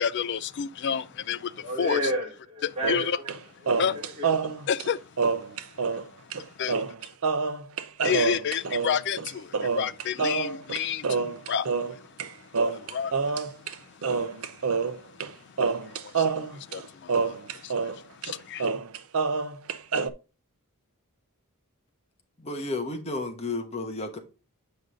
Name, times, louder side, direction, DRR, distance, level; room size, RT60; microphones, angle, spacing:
voice 1, 0.0-2.0 2.6-3.2 3.8-4.0 4.7-5.0 5.3-6.9 8.0-18.7, left 8 dB, 50° left, 0.4 m, -32 dB
voice 2, 1.5-3.3 3.6-4.6, left 1 dB, 30° right, 3.8 m, -32 dB
sound 1, 2.8-3.4 3.7-6.0 6.3-6.4 6.7-12.3 12.5-13.7 14.0-15.3 15.6-18.0 18.2-18.3 18.6-20.1, right 5 dB, 70° right, 0.6 m, -27 dB
voice 3, 22.4-24.2, left 2 dB, 30° left, 1.1 m, -32 dB
7.9 x 5.2 x 3.7 m
head